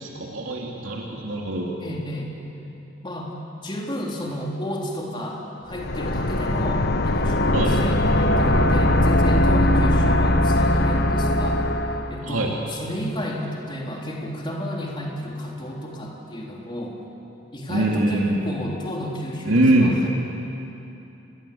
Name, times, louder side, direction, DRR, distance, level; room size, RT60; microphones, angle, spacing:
voice 1, 0.0-1.8 7.5-7.8 12.2-12.5 17.7-18.4 19.4-20.0, right 1 dB, 85° right, -1 dB, 2.8 m, -22 dB
voice 2, 1.8-2.3 3.0-3.3 3.6-11.6 12.1-17.0 17.5-20.1, equal, 25° left, -2 dB, 3.8 m, -32 dB
sound 1, 5.7-12.2, left 1 dB, 55° left, 1.3 m, -20 dB
30.0 x 21.0 x 8.7 m, 2.9 s
head